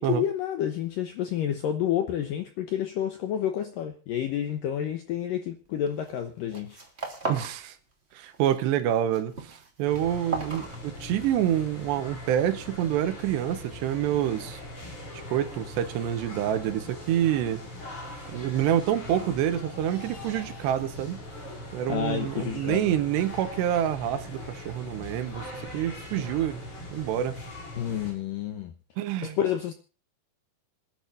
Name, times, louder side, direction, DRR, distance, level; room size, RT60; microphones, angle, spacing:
voice 1, 0.0-6.8 21.9-22.9 27.8-28.7 29.2-29.7, left 10 dB, 80° left, 2.0 m, -29 dB
sound 1, 5.9-6.2 6.4-7.6 7.9-8.6 8.9-11.4, right 2 dB, 20° right, 2.1 m, -36 dB
voice 2, 7.2-7.8 8.1-14.6 15.3-17.6 18.3-21.2 21.7-26.6 26.9-27.4 29.0-29.4, right 11 dB, 75° right, 3.2 m, -27 dB
sound 2, 9.8-28.1, left 1 dB, 30° left, 5.8 m, -41 dB
26.5 x 11.0 x 2.6 m
omnidirectional pair, 5.2 m